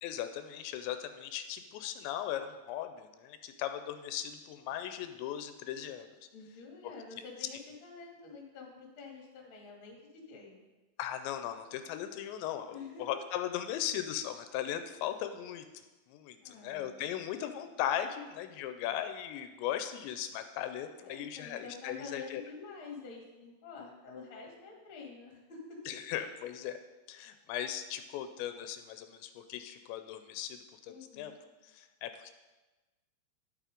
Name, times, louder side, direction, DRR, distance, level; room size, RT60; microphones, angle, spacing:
voice 1, 0.0-6.1 7.4-7.5 11.0-15.6 16.1-22.4 25.9-26.8 27.1-31.3 31.6-32.3, left 10 dB, 85° left, 8 dB, 2.8 m, -38 dB
voice 2, 6.3-10.6 12.7-13.0 16.4-17.0 21.0-25.6 25.9-26.0 30.9-31.4, left 5 dB, 40° left, -1 dB, 2.1 m, -48 dB
11.0 x 7.5 x 5.2 m, 1.2 s
omnidirectional pair, 5.2 m